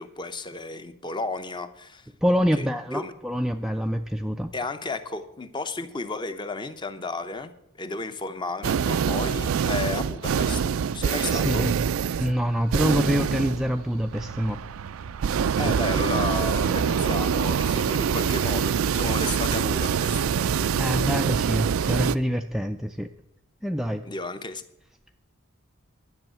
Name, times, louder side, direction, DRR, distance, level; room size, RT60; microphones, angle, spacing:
voice 1, 0.0-2.1 2.6-3.1 4.5-11.6 15.6-20.2 24.0-24.6, left 3 dB, 20° left, 10 dB, 0.7 m, -33 dB
voice 2, 2.2-4.5 11.3-11.7 12.2-14.6 15.6-15.7 20.8-23.1 23.6-24.0, equal, ahead, 5 dB, 0.3 m, -26 dB
sound 1, 8.6-22.2, right 7 dB, 80° right, 0.4 m, -25 dB
10.5 x 6.4 x 9.0 m, 0.81 s
head